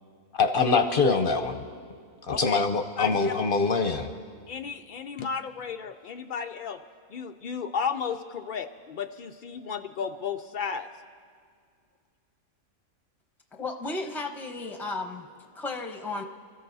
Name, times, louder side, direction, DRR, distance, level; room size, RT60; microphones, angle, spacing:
voice 1, 0.3-1.6 2.3-4.1, left 4 dB, 50° left, 6 dB, 0.7 m, -24 dB
voice 2, 2.3-2.6 3.0-3.3 4.5-6.8 7.1-10.9, left 6 dB, 85° left, 5 dB, 0.4 m, -33 dB
voice 3, 13.6-15.3 15.5-16.2, left 3 dB, ahead, 3 dB, 0.6 m, -34 dB
28.5 x 14.0 x 2.7 m, 2.1 s
omnidirectional pair, 1.4 m